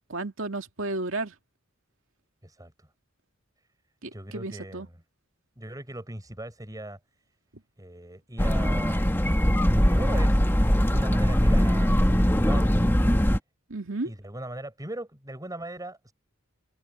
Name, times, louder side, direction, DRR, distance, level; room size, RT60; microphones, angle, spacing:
voice 1, 0.1-1.3 4.0-4.9 13.7-14.1, right 2 dB, 70° right, 2.5 m, -33 dB
voice 2, 2.4-2.9 4.1-5.0 5.6-7.0 7.8-9.1 9.4-12.8 14.0-16.1, right 1 dB, 20° right, 6.2 m, -39 dB
sound 1, 8.4-13.4, equal, 10° left, 1.6 m, -21 dB
head